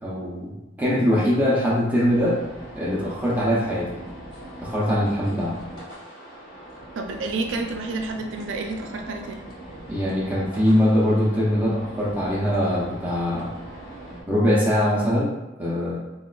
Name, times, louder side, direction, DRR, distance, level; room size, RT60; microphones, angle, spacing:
voice 1, 0.0-2.4 2.7-4.0 4.6-5.6 9.9-13.5 14.3-16.0, equal, 10° right, -6 dB, 0.5 m, -22 dB
sound 1, 2.0-14.2, right 1 dB, 50° left, 0.8 m, -41 dB
voice 2, 7.0-9.3, right 3 dB, 85° right, 4 dB, 0.4 m, -29 dB
3.8 x 2.3 x 2.2 m, 1.1 s
head